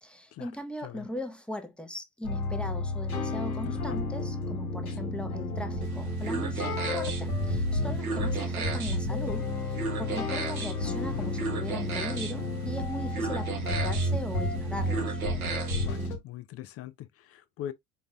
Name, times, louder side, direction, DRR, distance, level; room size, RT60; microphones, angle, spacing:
voice 1, 0.0-15.2, left 1 dB, ahead, 0.8 m, -39 dB
sound 1, 2.2-16.2, left 1 dB, 85° left, 1.1 m, -31 dB
voice 2, 3.6-4.0 10.8-11.3 15.8-17.7, left 12 dB, 35° left, 0.5 m, -41 dB
sound 2, 5.8-16.1, right 4 dB, 90° right, 1.1 m, -37 dB
5.0 x 3.9 x 2.2 m
figure-of-eight pair, 70°, 42 cm